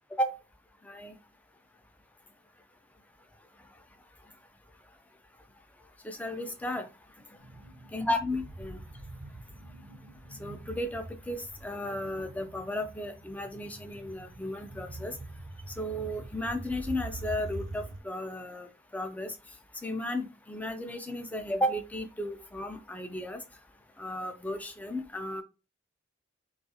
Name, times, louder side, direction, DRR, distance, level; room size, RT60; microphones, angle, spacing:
voice 1, 6.0-6.9 7.9-8.8 10.4-15.1 15.7-18.7 18.9-19.3 19.8-23.4 24.0-25.4, left 1 dB, 10° left, 7 dB, 0.3 m, -34 dB
sound 1, 7.4-18.0, right 2 dB, 85° right, 0.6 m, -44 dB
2.4 x 2.3 x 2.7 m, 0.29 s
head